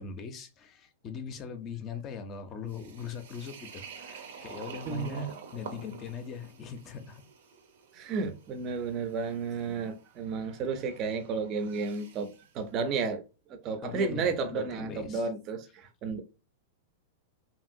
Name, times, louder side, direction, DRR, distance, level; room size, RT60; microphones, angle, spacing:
voice 1, 0.0-7.2 13.8-15.3, left 6 dB, 30° left, 0.5 m, -40 dB
sound 1, 2.7-12.5, right 6 dB, 75° right, 0.7 m, -49 dB
voice 2, 4.8-5.3 7.9-13.2 13.5-16.2, right 5 dB, 35° right, 0.5 m, -32 dB
2.8 x 2.7 x 2.6 m
hypercardioid pair, 135°, 0 cm